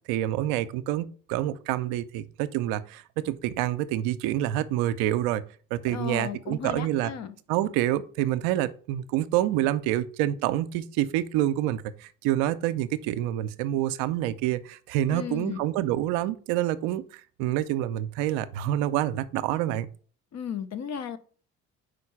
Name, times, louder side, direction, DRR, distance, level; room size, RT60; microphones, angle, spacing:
voice 1, 0.1-5.4 5.7-7.1 7.5-19.9, right 13 dB, 75° right, 0.6 m, -27 dB
voice 2, 5.9-7.3 15.1-15.6 20.3-21.2, left 8 dB, 50° left, 0.9 m, -34 dB
5.1 x 3.8 x 5.7 m
hypercardioid pair, 60°, 35 cm